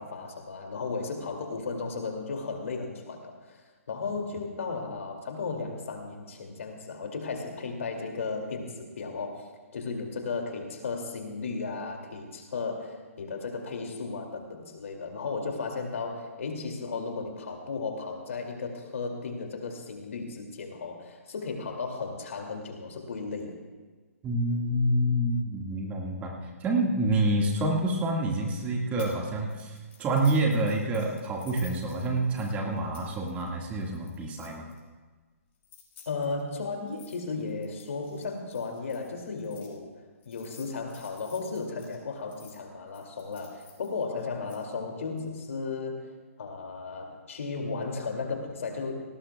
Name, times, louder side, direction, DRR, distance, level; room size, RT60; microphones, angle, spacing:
voice 1, 0.0-23.6 36.1-39.9 40.2-46.1 46.4-49.0, left 4 dB, 65° left, 3 dB, 2.5 m, -35 dB
voice 2, 24.2-34.7, right 1 dB, 20° right, 0 dB, 1.8 m, -27 dB
sound 1, 29.0-29.2 29.5-34.8 35.5-39.7 40.2-42.5 42.9-44.6, left 7 dB, 45° left, 5.3 m, -53 dB
18.5 x 18.0 x 2.3 m, 1.4 s
hypercardioid pair, 135°, 8 cm